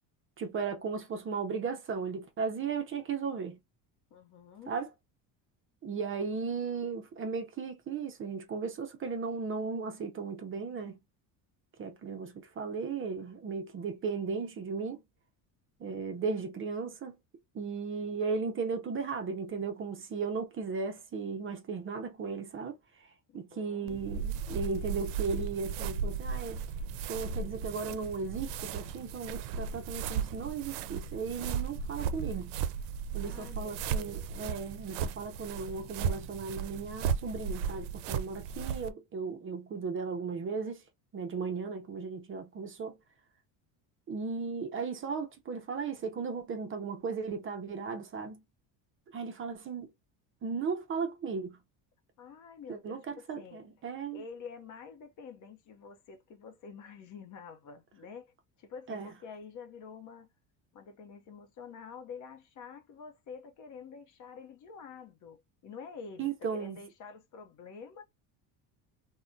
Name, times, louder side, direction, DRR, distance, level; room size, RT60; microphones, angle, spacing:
voice 1, 0.4-3.6 4.7-4.9 5.8-11.0 11.8-15.0 15.8-17.2 17.5-23.1 23.3-26.6 27.1-32.6 33.1-40.8 41.1-43.0 44.1-48.4 49.1-49.9 50.4-51.6 52.7-54.2 58.9-59.1 66.2-66.8, right 5 dB, 30° right, 0.6 m, -36 dB
voice 2, 4.1-4.7 23.3-24.0 33.2-34.3 52.2-53.6 54.1-58.3 58.6-60.3 60.7-68.0, left 6 dB, 45° left, 0.7 m, -48 dB
sound 1, 23.9-38.9, right 6 dB, 85° right, 0.5 m, -36 dB
3.5 x 2.2 x 2.5 m
cardioid pair, 130°, 41 cm